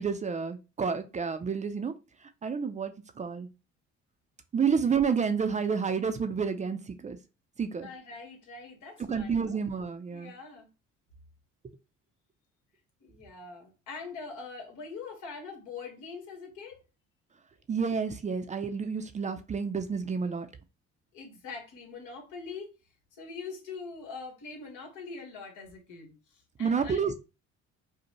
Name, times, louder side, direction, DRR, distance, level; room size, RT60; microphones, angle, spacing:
voice 1, 0.0-1.9 2.2-3.5 4.5-7.2 7.6-7.9 9.1-10.3 17.7-20.5 26.6-27.1, right 6 dB, 25° right, 0.4 m, -30 dB
voice 2, 7.8-9.6 10.1-10.7 13.0-16.8 21.1-22.7 23.1-27.2, left 4 dB, 80° left, 1.5 m, -43 dB
5.2 x 2.1 x 3.0 m
cardioid pair, 110°, 30 cm